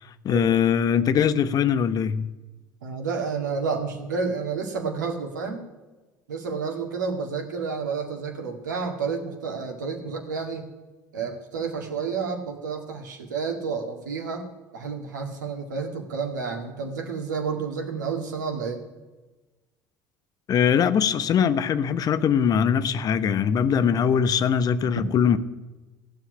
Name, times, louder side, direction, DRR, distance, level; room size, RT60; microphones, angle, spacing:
voice 1, 0.2-2.3 20.5-25.4, left 7 dB, 40° left, 1.0 m, -21 dB
voice 2, 2.8-5.6 6.3-10.6 11.1-14.5 14.7-18.8, right 5 dB, 75° right, 2.1 m, -30 dB
15.5 x 7.6 x 9.9 m
figure-of-eight pair, 60°, 10 cm